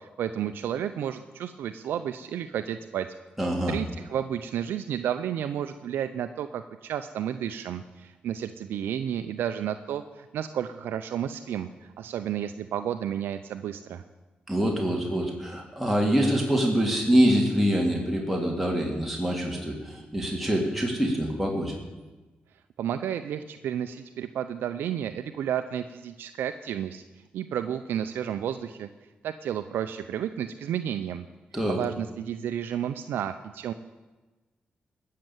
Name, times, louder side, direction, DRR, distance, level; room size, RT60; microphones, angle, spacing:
voice 1, 0.0-3.1 3.7-14.0 22.8-27.0 27.3-28.9 29.2-31.2 31.7-33.7, right 9 dB, 85° right, 9 dB, 0.5 m, -32 dB
voice 2, 3.4-3.7 14.5-21.7 31.5-31.8, equal, ahead, -1 dB, 3.1 m, -25 dB
16.5 x 6.7 x 9.1 m, 1.2 s
supercardioid pair, 55°, 4 cm